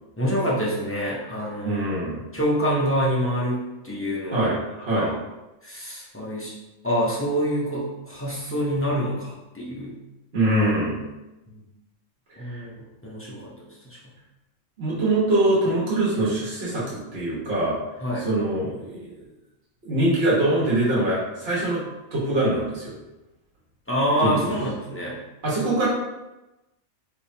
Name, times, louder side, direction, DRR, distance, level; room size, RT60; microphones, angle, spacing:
voice 1, 0.2-2.0 2.3-4.5 4.9-5.2 5.6-6.5 6.8-10.0 11.5-11.6 12.4-14.1 18.0-18.3 23.9-25.2, equal, 20° left, -6 dB, 0.4 m, -26 dB
voice 2, 1.6-2.2 4.3-5.1 10.3-11.0 12.5-12.6 14.8-17.7 18.2-19.1 19.8-21.8 22.1-22.9 24.2-24.3 25.4-25.9, right 1 dB, 50° right, -8 dB, 1.5 m, -23 dB
3.6 x 3.0 x 2.7 m, 1.0 s
omnidirectional pair, 1.4 m